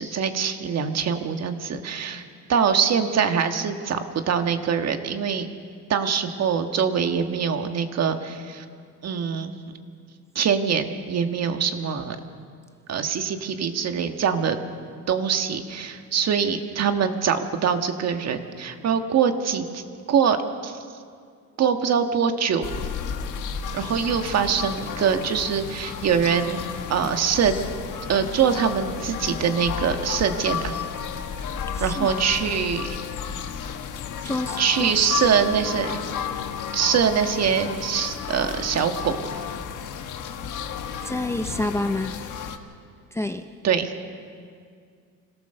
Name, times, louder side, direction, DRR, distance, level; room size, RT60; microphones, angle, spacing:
voice 1, 0.0-2.2 2.5-5.5 5.9-8.6 9.0-9.5 10.3-12.2 12.9-14.6 15.1-19.8 20.1-20.4 20.6-20.8 21.6-22.7 23.7-26.6 26.9-27.5 28.1-30.7 31.8-33.0 34.6-35.9 36.7-39.5 43.6-43.9, right 7 dB, 50° right, 7 dB, 1.5 m, -23 dB
sound 1, 22.6-42.6, left 7 dB, 65° left, 1.5 m, -32 dB
voice 2, 31.7-32.1 34.2-34.9 41.0-42.3 43.1-43.5, left 2 dB, 10° left, 7 dB, 0.6 m, -28 dB
26.0 x 17.0 x 6.8 m, 2.2 s
cardioid pair, 140°, 33 cm